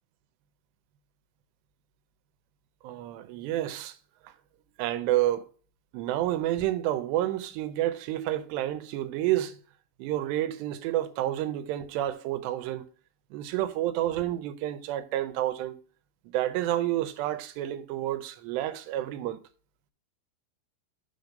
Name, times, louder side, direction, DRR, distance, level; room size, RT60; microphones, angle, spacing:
voice 1, 2.8-4.0 4.2-4.3 4.8-5.5 5.9-9.6 10.0-12.9 13.3-15.8 16.3-19.4, right 13 dB, 90° right, 2.9 m, -29 dB
6.4 x 5.2 x 5.2 m
omnidirectional pair, 4.8 m